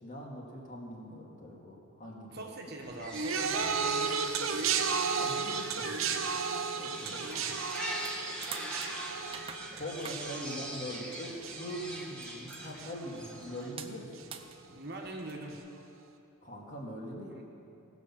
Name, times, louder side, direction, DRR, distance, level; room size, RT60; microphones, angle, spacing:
voice 1, 0.0-2.5 5.1-6.1 6.8-7.3 9.7-14.3 16.4-17.4, equal, 35° left, -3 dB, 2.1 m, -42 dB
voice 2, 2.3-4.9 7.3-7.6 14.7-15.6 17.3-17.4, right 1 dB, 45° right, 0 dB, 1.4 m, -42 dB
sound 1, 2.8-13.7, right 1 dB, 5° left, 1.6 m, -42 dB
sound 2, 3.1-12.5 12.8-13.3 14.2-14.3, right 6 dB, 65° right, 0.8 m, -34 dB
sound 3, 7.0-15.6, right 7 dB, 25° right, 0.5 m, -49 dB
18.5 x 6.5 x 7.2 m, 2.8 s
head